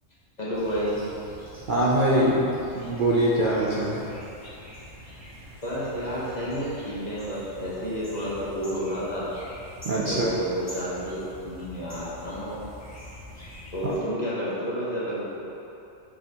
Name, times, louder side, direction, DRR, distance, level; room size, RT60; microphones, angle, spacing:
voice 1, 0.4-1.0 5.6-9.3 10.1-11.2 11.4-12.6 13.7-15.4, equal, 35° left, -8 dB, 1.2 m, -30 dB
sound 1, 0.5-14.0, left 1 dB, 15° left, 1.2 m, -45 dB
voice 2, 1.7-4.1 9.8-10.3 13.8-13.9, right 1 dB, 50° right, -6 dB, 0.7 m, -23 dB
6.1 x 5.6 x 2.9 m, 2.8 s
omnidirectional pair, 1.3 m